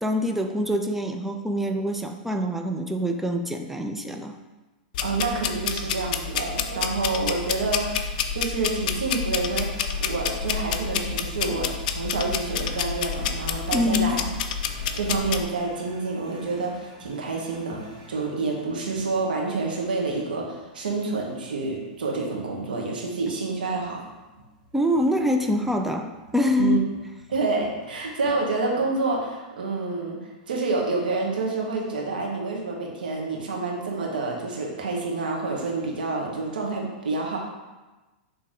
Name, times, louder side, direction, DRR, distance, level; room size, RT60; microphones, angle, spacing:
voice 1, 0.0-4.3 13.7-14.2 24.7-26.8, left 1 dB, 5° right, 4 dB, 0.5 m, -25 dB
sound 1, 4.9-15.4, left 7 dB, 60° left, 0.5 m, -29 dB
voice 2, 5.0-14.2 14.9-17.8 18.1-24.0 26.6-26.8 27.3-37.4, right 3 dB, 90° right, -1 dB, 1.5 m, -28 dB
sound 2, 8.4-28.3, right 2 dB, 75° right, 1.8 m, -50 dB
7.9 x 3.4 x 3.7 m, 1.2 s
hypercardioid pair, 125°, 5 cm